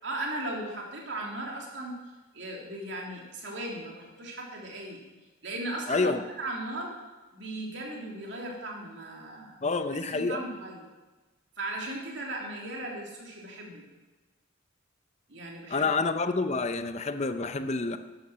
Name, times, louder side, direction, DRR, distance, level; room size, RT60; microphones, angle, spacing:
voice 1, 0.0-2.0 2.3-5.0 5.4-6.9 7.3-9.6 10.1-10.8 11.6-13.8 15.3-15.9, right 1 dB, 65° right, -1 dB, 3.1 m, -37 dB
voice 2, 5.9-6.2 9.6-10.4 15.7-18.0, left 3 dB, 35° left, 9 dB, 0.7 m, -28 dB
11.5 x 11.0 x 6.2 m, 1.2 s
head